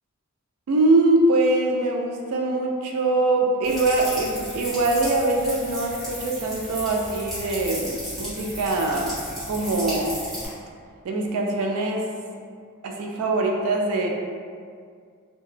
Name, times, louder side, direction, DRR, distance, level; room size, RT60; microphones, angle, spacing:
voice 1, 0.7-9.2 9.5-10.2 11.0-12.1 12.8-14.1, right 2 dB, 70° right, 1 dB, 0.3 m, -23 dB
sound 1, 3.6-10.5, equal, ahead, 1.1 m, -34 dB
2.7 x 2.2 x 3.2 m, 2.2 s
head